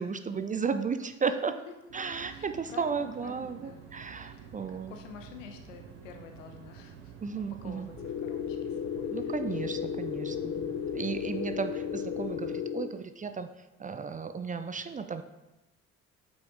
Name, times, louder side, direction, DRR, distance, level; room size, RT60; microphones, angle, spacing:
voice 1, 0.0-1.5 1.9-5.0 7.2-7.9 9.1-13.5 13.8-15.2, right 5 dB, 20° right, 10 dB, 0.5 m, -34 dB
sound 1, 1.9-12.6, right 7 dB, 70° right, 1.1 m, -49 dB
voice 2, 2.3-3.8 4.1-9.3 10.2-10.6, left 6 dB, 75° left, 5 dB, 0.9 m, -50 dB
sound 2, 8.0-12.9, left 8 dB, 35° left, 0.6 m, -34 dB
7.8 x 5.8 x 3.8 m, 1.0 s
figure-of-eight pair, 45°, 38 cm